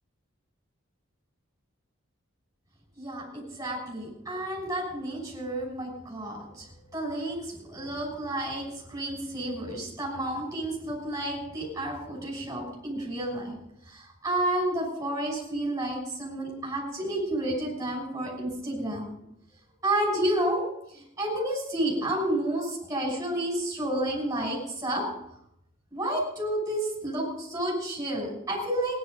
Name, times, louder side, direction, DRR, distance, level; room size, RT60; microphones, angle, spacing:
voice 1, 3.0-6.7 6.9-13.6 13.9-19.1 19.8-20.7 20.9-25.1 25.9-29.0, right 1 dB, 15° right, -4 dB, 6.6 m, -30 dB
17.5 x 10.5 x 5.4 m, 0.78 s
head